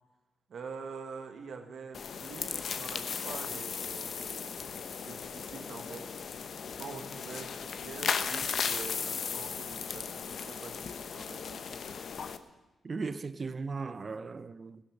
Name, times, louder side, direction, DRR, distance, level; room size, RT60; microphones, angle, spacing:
voice 1, 0.5-4.8 5.0-6.1 6.8-11.8, right 5 dB, 70° right, 1.7 m, -46 dB
Sprinkling of snow on branches II, 1.9-12.4, left 6 dB, 65° left, 0.9 m, -36 dB
voice 2, 12.8-14.8, right 4 dB, 45° right, 0.7 m, -37 dB
15.0 x 11.5 x 6.5 m
cardioid pair, 70°, 0 cm